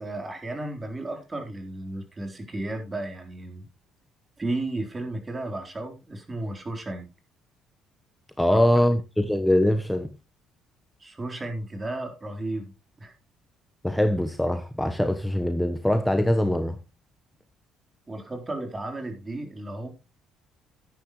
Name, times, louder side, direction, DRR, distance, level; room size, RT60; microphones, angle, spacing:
voice 1, 0.0-3.7 4.4-7.1 8.5-8.8 11.0-13.1 18.1-19.9, right 2 dB, 25° right, 3.8 m, -34 dB
voice 2, 8.4-10.1 13.8-16.8, left 1 dB, 5° left, 1.1 m, -23 dB
13.0 x 10.0 x 3.2 m
hypercardioid pair, 60°, 0 cm